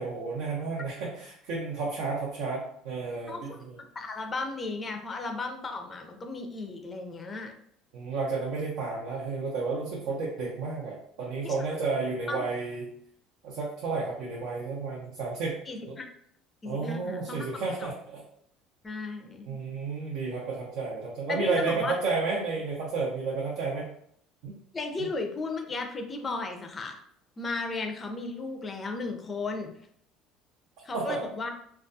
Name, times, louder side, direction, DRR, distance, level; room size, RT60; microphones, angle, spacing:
voice 1, 0.0-3.8 7.9-12.9 13.4-15.6 15.9-16.0 16.6-18.2 19.5-23.9 24.4-24.6 25.0-25.1 30.9-31.2, right 4 dB, 75° right, -4 dB, 0.6 m, -32 dB
voice 2, 3.3-3.7 4.0-7.5 11.4-11.5 12.3-12.4 15.7-16.0 16.6-17.4 18.8-19.6 21.3-22.0 24.7-27.0 27.4-29.8 30.8-31.5, left 3 dB, 25° left, 4 dB, 0.4 m, -35 dB
2.3 x 2.2 x 2.6 m, 0.67 s
cardioid pair, 130°, 0 cm